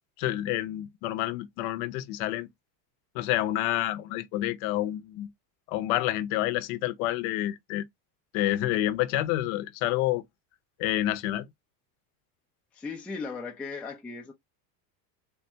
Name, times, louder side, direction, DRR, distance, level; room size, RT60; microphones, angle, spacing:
voice 1, 0.2-2.5 3.1-5.3 5.7-7.8 8.3-10.2 10.8-11.5, left 14 dB, 65° left, 0.7 m, -28 dB
voice 2, 12.7-14.3, left 4 dB, 5° left, 0.3 m, -37 dB
3.6 x 2.2 x 2.7 m
supercardioid pair, 115°, 50 cm